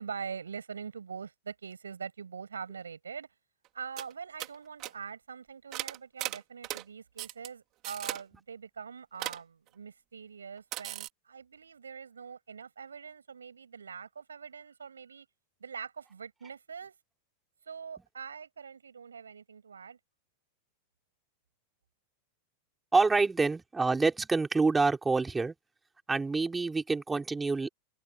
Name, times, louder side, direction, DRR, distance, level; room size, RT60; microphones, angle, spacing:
voice 1, 0.0-3.3 3.7-15.3 15.6-16.9 17.7-20.0, right 6 dB, 70° right, 7.8 m, -43 dB
sound 1, 3.6-3.7 4.0-4.1 4.4-4.5 4.8-4.9 5.7-6.8 7.2-7.5 7.8-8.2 9.2-9.4 10.7-11.1, right 18 dB, 35° right, 4.5 m, -37 dB
voice 2, 22.9-25.5 26.1-27.7, right 3 dB, 10° right, 5.2 m, -27 dB
figure-of-eight pair, 90°, 0 cm